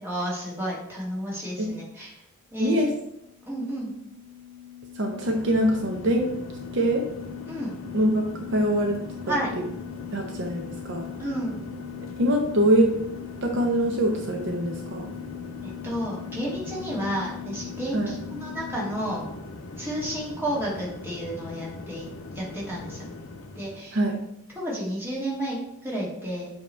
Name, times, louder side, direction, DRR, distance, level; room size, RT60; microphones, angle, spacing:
voice 1, 0.0-2.2 2.5-2.9 3.5-3.9 7.5-7.7 9.3-9.5 11.2-11.5 15.8-19.2 19.8-23.1 23.5-24.0 24.5-26.5, equal, 10° right, -6 dB, 1.8 m, -31 dB
voice 2, 2.6-2.9 4.9-6.3 6.7-7.0 7.9-9.0 9.3-9.4 10.1-11.1 12.2-12.9 13.4-15.1 17.9-18.1 23.9-24.2, right 1 dB, 55° right, 2 dB, 0.6 m, -23 dB
sound 1, 2.8-19.0, left 12 dB, 25° left, 1.8 m, -41 dB
sound 2, 5.2-23.8, left 2 dB, 70° left, 0.6 m, -41 dB
7.4 x 2.9 x 4.3 m, 0.80 s
head